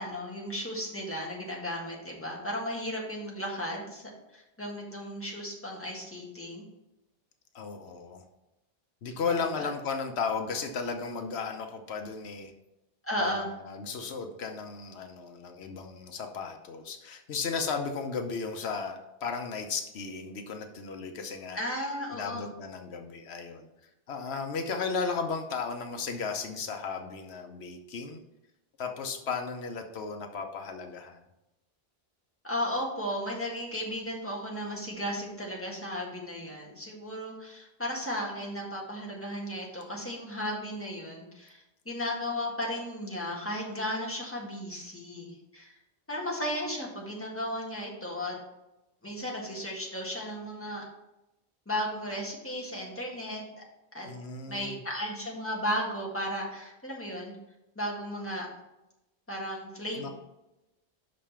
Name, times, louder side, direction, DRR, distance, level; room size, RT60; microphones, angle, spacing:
voice 1, 0.0-4.0 4.3-6.7 9.3-9.7 13.0-13.5 21.5-22.5 32.4-45.7 46.1-48.4 49.0-50.8 51.7-53.6 53.9-54.1 54.5-57.3 57.8-58.5 59.3-60.1, equal, 10° left, -2 dB, 1.7 m, -35 dB
voice 2, 7.5-8.2 9.0-12.5 13.2-21.6 22.1-23.7 24.1-28.2 28.8-31.2 54.0-54.8 60.0-60.1, left 5 dB, 90° left, 5 dB, 1.1 m, -35 dB
6.1 x 5.4 x 5.6 m, 0.94 s
omnidirectional pair, 1.0 m